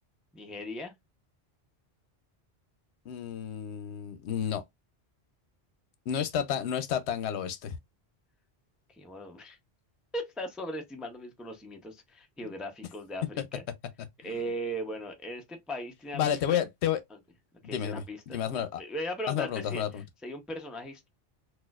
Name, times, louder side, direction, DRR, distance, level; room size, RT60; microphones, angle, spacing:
voice 1, 0.3-0.9 8.9-9.6 10.1-13.6 14.2-16.6 17.6-18.4 18.8-21.1, equal, ahead, 0.4 m, -38 dB
voice 2, 3.1-4.6 6.1-7.7 14.3-14.4 16.1-17.0 17.6-18.8 19.3-20.0, left 9 dB, 80° left, 0.9 m, -31 dB
4.1 x 2.4 x 2.3 m
omnidirectional pair, 1.1 m